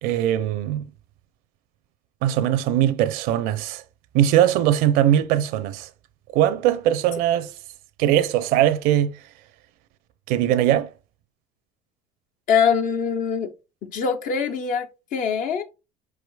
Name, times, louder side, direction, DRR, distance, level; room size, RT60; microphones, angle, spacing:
voice 1, 0.0-0.9 2.2-3.8 4.1-5.9 6.3-7.5 8.0-9.1 10.3-10.9, right 11 dB, 75° right, 0.6 m, -20 dB
voice 2, 12.5-13.5 13.9-14.9 15.1-15.6, left 6 dB, 60° left, 0.7 m, -22 dB
4.9 x 4.7 x 2.3 m
supercardioid pair, 95°, 15 cm